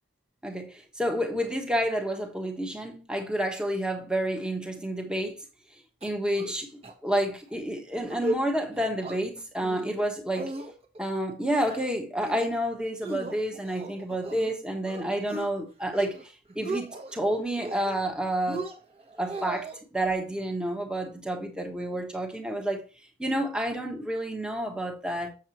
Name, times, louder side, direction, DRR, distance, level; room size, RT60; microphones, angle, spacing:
voice 1, 0.4-5.4 6.0-10.5 11.0-18.7 19.2-19.7 19.9-22.8 23.2-25.3, right 1 dB, 5° right, 1.2 m, -29 dB
sound 1, 6.0-6.6 6.8-6.9 7.3-7.5 8.0-8.4 8.7-9.2 9.6-10.0 10.3-11.0 11.4-11.9 12.2-12.6 13.0-14.5 14.9-15.5 15.8-16.2 16.5-17.1 17.6-18.1 18.5-19.8, right 1 dB, 25° right, 1.2 m, -36 dB
7.4 x 7.3 x 3.0 m
head